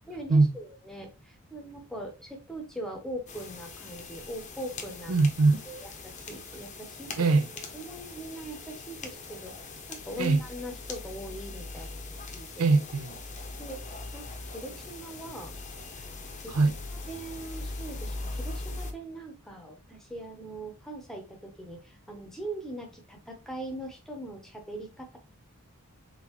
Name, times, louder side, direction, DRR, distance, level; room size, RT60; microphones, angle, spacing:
voice 1, 0.1-5.1 5.7-7.3 7.7-12.6 13.6-15.5 16.4-16.6 17.1-25.2, right 1 dB, ahead, 0.8 m, -41 dB
sound 1, 3.3-18.9, left 3 dB, 35° left, 0.7 m, -41 dB
voice 2, 5.1-5.6 7.2-7.4 10.2-10.4 12.6-13.2 16.5-16.7, right 3 dB, 85° right, 0.6 m, -22 dB
3.9 x 3.6 x 3.0 m
head